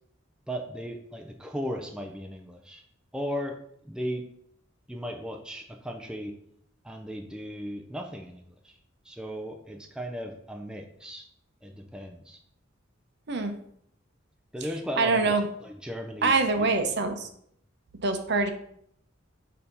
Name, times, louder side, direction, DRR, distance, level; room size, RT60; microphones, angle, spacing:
voice 1, 0.5-2.8 3.1-3.6 3.8-4.3 4.9-6.3 6.8-8.8 9.0-11.3 11.6-12.4 14.5-16.3 16.6-17.0, equal, 5° right, 2 dB, 0.4 m, -36 dB
voice 2, 15.0-15.5 16.2-17.3 18.0-18.5, right 3 dB, 55° right, 6 dB, 0.7 m, -24 dB
6.6 x 2.8 x 5.2 m, 0.68 s
head